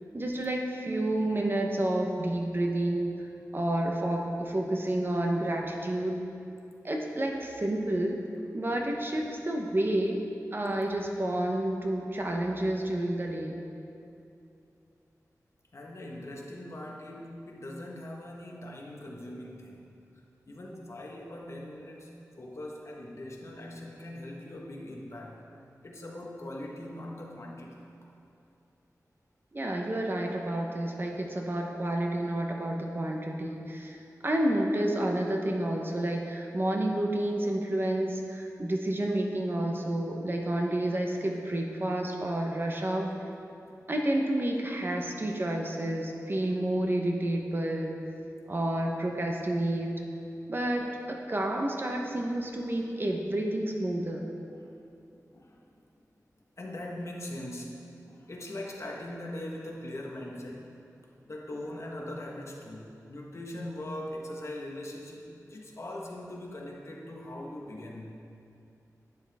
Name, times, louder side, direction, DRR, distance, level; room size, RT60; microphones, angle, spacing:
voice 1, 0.1-3.2 3.5-6.2 6.8-8.2 8.5-10.2 10.5-13.6 29.5-34.0 34.2-43.1 43.9-48.0 48.5-49.9 50.5-54.2, right 1 dB, 35° right, 1 dB, 1.0 m, -30 dB
voice 2, 15.7-19.9 20.5-25.4 25.8-27.9 43.6-43.7 50.3-50.4 50.7-50.8 51.2-51.3 54.5-54.7 55.3-55.6 56.6-60.8 61.3-68.2, left 1 dB, 50° left, -2 dB, 1.4 m, -41 dB
11.0 x 9.9 x 3.6 m, 2.7 s
wide cardioid pair, 105°, 6 cm